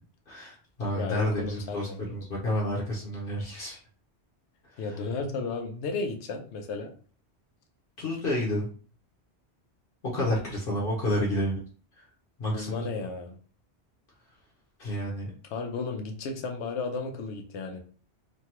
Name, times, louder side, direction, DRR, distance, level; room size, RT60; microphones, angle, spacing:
voice 1, 0.3-3.8 4.6-5.0 8.0-8.7 10.0-11.6 11.9-12.1 12.4-12.9 14.8-15.3, left 1 dB, 60° left, -3 dB, 0.9 m, -30 dB
voice 2, 0.9-2.0 4.8-6.9 12.5-13.4 15.5-17.8, left 4 dB, 85° left, 3 dB, 0.9 m, -33 dB
3.2 x 2.3 x 2.9 m, 0.42 s
omnidirectional pair, 1.1 m